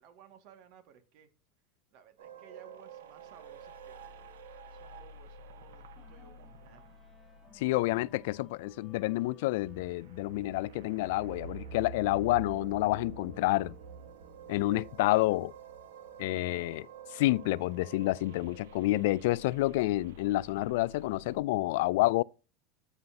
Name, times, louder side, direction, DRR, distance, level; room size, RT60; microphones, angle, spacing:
voice 1, 0.0-1.3 1.9-4.3 4.6-7.0, right 8 dB, 60° right, 2.0 m, -58 dB
sound 1, 2.2-21.4, right 5 dB, 90° right, 1.4 m, -49 dB
sound 2, 6.0-18.3, left 3 dB, 20° left, 1.4 m, -63 dB
voice 2, 7.5-13.8 14.5-15.5 16.2-22.2, left 18 dB, 75° left, 0.3 m, -29 dB
13.5 x 5.6 x 2.8 m
supercardioid pair, 125°, 0 cm